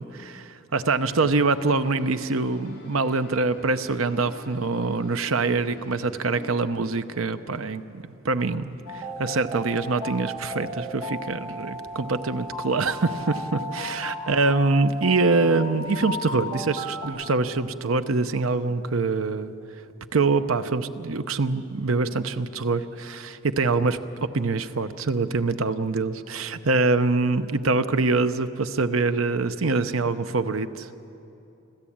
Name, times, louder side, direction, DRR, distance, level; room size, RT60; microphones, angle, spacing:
voice 1, 0.0-19.5 20.1-30.9, right 3 dB, 85° right, 11 dB, 0.8 m, -25 dB
sound 1, 0.8-6.5, right 1 dB, 50° left, 5.2 m, -46 dB
sound 2, 8.9-17.1, equal, 35° right, 4.0 m, -34 dB
26.5 x 14.0 x 8.7 m, 2.9 s
head